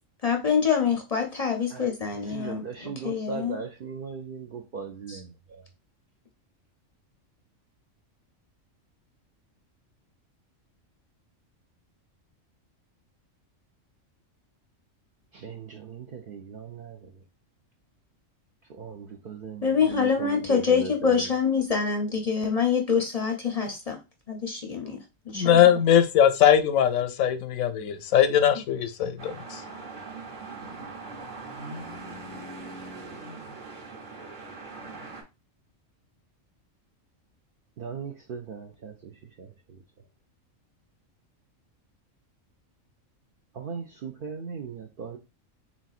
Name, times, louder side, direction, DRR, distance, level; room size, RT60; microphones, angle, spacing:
voice 1, 0.2-3.6 5.1-5.2 19.6-24.0 24.3-25.0 25.3-25.6, left 6 dB, 45° left, 0.5 m, -25 dB
voice 2, 1.7-5.7 15.3-17.1 18.7-21.3 37.8-39.8 43.5-45.2, right 5 dB, 65° right, 0.5 m, -39 dB
voice 3, 25.3-29.6, left 9 dB, 90° left, 1.0 m, -21 dB
sound 1, 29.2-35.2, right 3 dB, 40° right, 0.9 m, -41 dB
4.2 x 3.6 x 2.4 m
omnidirectional pair, 1.4 m